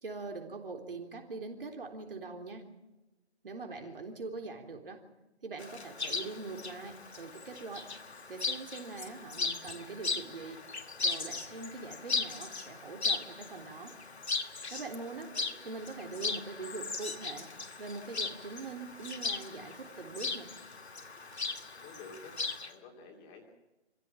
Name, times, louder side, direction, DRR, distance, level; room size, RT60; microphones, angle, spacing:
voice 1, 0.0-2.6 3.4-5.0 5.4-7.9 8.3-10.6 11.0-13.9 14.7-15.3 15.6-17.5 17.8-20.5, right 3 dB, 50° right, 4 dB, 3.7 m, -43 dB
voice 2, 3.5-4.0 15.1-15.6 21.8-23.5, left 4 dB, 15° left, 2 dB, 2.6 m, -52 dB
Chirp tweet, 5.6-22.7, left 4 dB, 65° left, 2.2 m, -38 dB
24.5 x 15.5 x 8.8 m, 1.0 s
figure-of-eight pair, 145°, 34 cm